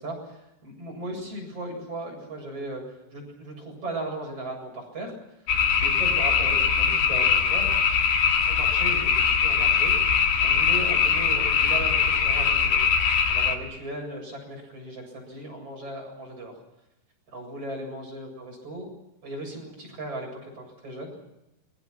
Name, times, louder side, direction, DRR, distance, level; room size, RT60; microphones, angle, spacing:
voice 1, 0.0-2.8 3.1-5.1 5.8-7.7 8.5-9.9 10.4-12.8 13.3-16.5 17.3-18.9 19.2-21.1, right 2 dB, 35° right, 1 dB, 8.6 m, -37 dB
sound 1, 5.5-13.6, left 6 dB, 65° left, 3.9 m, -22 dB
30.0 x 23.5 x 6.1 m, 0.89 s
omnidirectional pair, 4.9 m